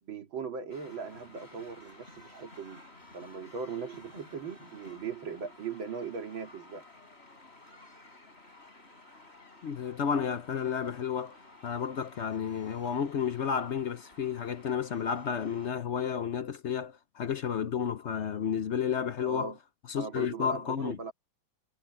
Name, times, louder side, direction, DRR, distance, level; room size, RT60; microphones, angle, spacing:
voice 1, 0.0-2.8 3.1-6.8 19.2-19.6 19.9-21.1, right 5 dB, 85° right, 3.1 m, -39 dB
sound 1, 0.7-15.7, left 2 dB, 30° left, 5.2 m, -54 dB
voice 2, 9.6-11.4 11.6-19.5 19.9-21.0, left 7 dB, 60° left, 0.7 m, -32 dB
omnidirectional pair, 2.1 m